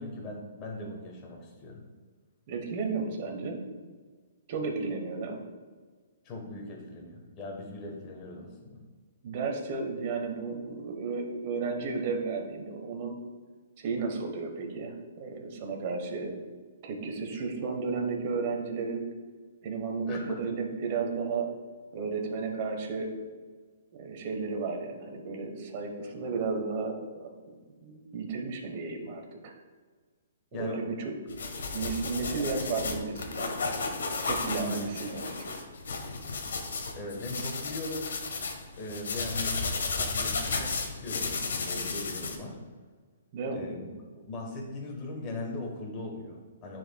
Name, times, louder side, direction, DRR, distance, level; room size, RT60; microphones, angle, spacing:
voice 1, 0.0-1.8 6.2-8.8 20.1-20.5 30.5-30.8 34.6-35.0 36.9-38.1 38.8-39.6 39.9-42.6 43.5-43.9 44.3-46.8, left 2 dB, 25° left, -1 dB, 1.2 m, -39 dB
voice 2, 2.5-3.6 4.5-5.4 9.2-13.2 13.8-16.3 16.8-19.0 19.6-21.5 21.9-23.1 23.9-27.3 27.8-29.5 30.6-31.1 31.7-33.6 34.2-35.6 43.3-43.6, right 4 dB, 40° right, 2 dB, 1.1 m, -33 dB
sound 1, 31.3-42.4, left 4 dB, 80° left, 0.9 m, -33 dB
9.9 x 4.4 x 2.3 m, 1.5 s
hypercardioid pair, 155°, 0 cm